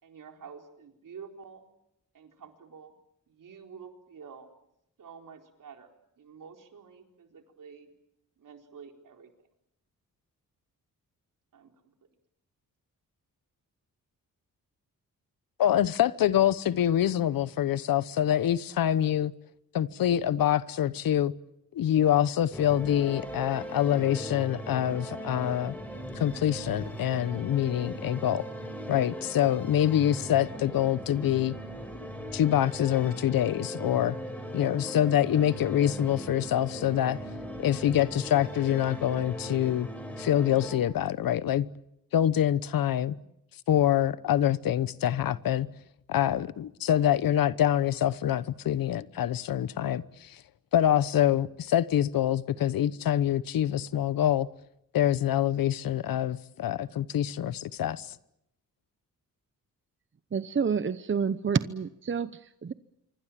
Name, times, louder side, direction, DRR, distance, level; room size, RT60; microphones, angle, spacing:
voice 1, 0.0-1.6 2.1-2.9 3.3-4.5 5.0-7.9 8.4-9.3 11.5-11.7, right 6 dB, 70° right, 4.3 m, -49 dB
voice 2, 15.6-19.3 19.7-21.3 21.7-25.7 26.1-28.4 28.9-31.5 32.0-34.2 34.5-37.2 37.6-39.9 40.2-41.7 42.1-43.1 43.7-45.7 46.1-50.4 50.7-54.5 54.9-58.2, left 11 dB, 85° left, 1.0 m, -25 dB
sound 1, 22.5-40.8, equal, 5° left, 6.9 m, -39 dB
voice 3, 60.3-62.7, right 6 dB, 35° right, 0.9 m, -29 dB
26.0 x 24.5 x 7.5 m
cardioid pair, 90°, 34 cm